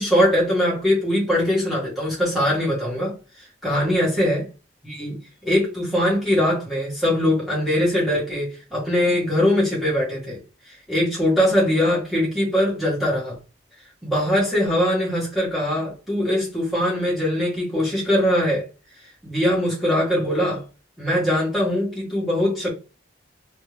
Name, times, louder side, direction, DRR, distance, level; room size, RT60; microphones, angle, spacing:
voice 1, 0.0-3.2 3.6-4.4 4.8-5.2 5.4-10.4 10.7-13.4 14.0-18.7 19.2-20.6 21.0-22.7, equal, ahead, 1.6 m, -21 dB
3.2 x 3.0 x 3.3 m
head